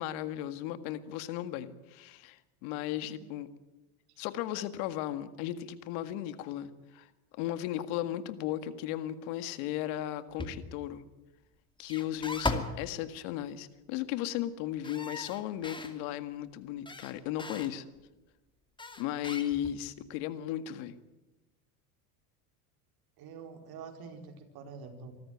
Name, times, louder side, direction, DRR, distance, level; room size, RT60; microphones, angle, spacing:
voice 1, 0.0-3.5 4.2-7.1 7.3-11.1 11.8-17.8 19.0-21.0, left 12 dB, 70° left, 12 dB, 1.9 m, -36 dB
sound 1, 10.4-10.8 11.8-12.8 14.8-15.9 16.9-17.7 18.8-19.9, left 2 dB, 10° left, 2.6 m, -37 dB
voice 2, 23.2-25.1, right 5 dB, 55° right, 5 dB, 4.7 m, -47 dB
24.5 x 14.0 x 9.4 m, 1.0 s
supercardioid pair, 100°, 45 cm